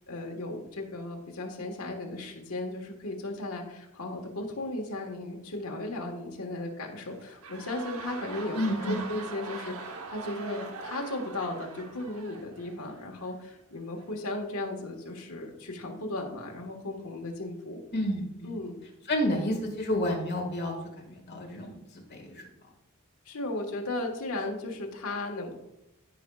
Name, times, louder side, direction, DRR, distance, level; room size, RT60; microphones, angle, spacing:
voice 1, 0.0-17.8 18.4-18.8 23.2-25.5, left 2 dB, 80° left, 1 dB, 1.4 m, -36 dB
sound 1, 7.0-13.3 14.0-14.1, right 3 dB, 75° right, 0.9 m, -42 dB
voice 2, 8.5-9.0 17.9-18.6 19.1-20.8 21.0-22.5, equal, 50° left, 1 dB, 1.8 m, -30 dB
15.0 x 5.2 x 2.3 m, 0.87 s
head